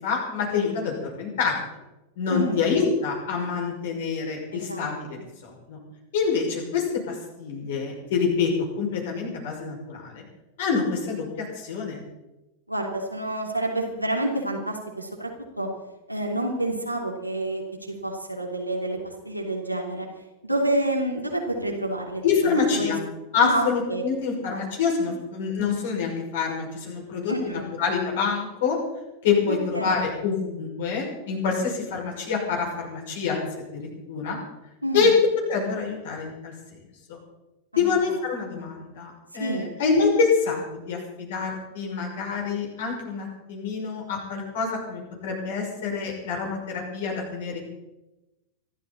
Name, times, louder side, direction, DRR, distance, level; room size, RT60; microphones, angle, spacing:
voice 1, 0.0-1.5 2.2-5.8 6.1-8.5 8.8-10.2 10.6-12.0 22.2-23.0 23.3-28.8 29.2-34.4 34.9-35.1 35.5-36.5 37.8-47.6, left 5 dB, 55° left, 0 dB, 5.9 m, -26 dB
voice 2, 2.3-2.7 4.5-5.2 12.7-15.3 15.6-15.7 16.1-20.1 20.4-22.9 23.4-24.0 25.1-25.2 27.3-27.7 29.5-30.2 34.8-35.2 37.7-38.1 38.5-38.7 39.4-39.7, right 1 dB, 90° right, 0 dB, 3.0 m, -29 dB
25.5 x 13.0 x 4.2 m, 1.0 s
figure-of-eight pair, 90°, 0 cm